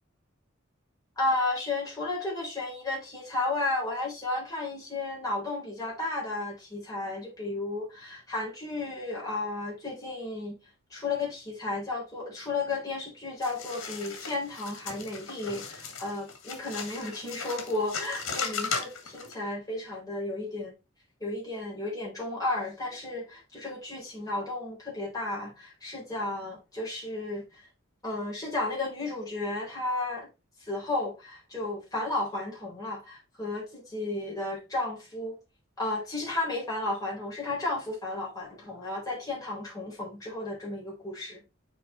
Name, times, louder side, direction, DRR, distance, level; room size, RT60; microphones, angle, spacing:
voice 1, 1.2-10.6 10.9-20.7 21.2-27.7 28.0-30.3 30.6-35.4 35.8-41.4, left 2 dB, 15° left, 4.4 m, -33 dB
sound 1, 13.4-19.3, left 5 dB, 75° left, 2.1 m, -37 dB
6.7 x 5.0 x 4.2 m
head